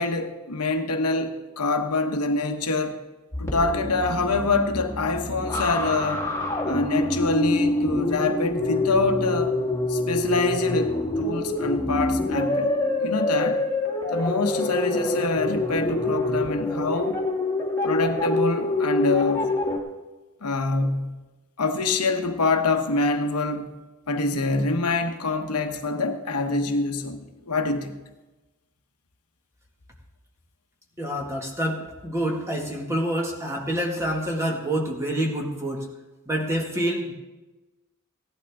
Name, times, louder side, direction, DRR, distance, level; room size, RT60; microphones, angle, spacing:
voice 1, 0.0-3.0 3.4-6.3 6.6-9.6 9.9-12.7 13.0-13.6 14.1-17.2 17.8-19.5 20.4-21.2 21.6-23.7 24.1-27.9, left 3 dB, 85° left, 6 dB, 1.1 m, -25 dB
sound 1, 3.3-19.8, left 2 dB, 15° left, 1.9 m, -26 dB
voice 2, 31.0-35.9 36.3-37.1, right 1 dB, 15° right, 0 dB, 1.8 m, -27 dB
16.0 x 11.0 x 3.6 m, 1.1 s
head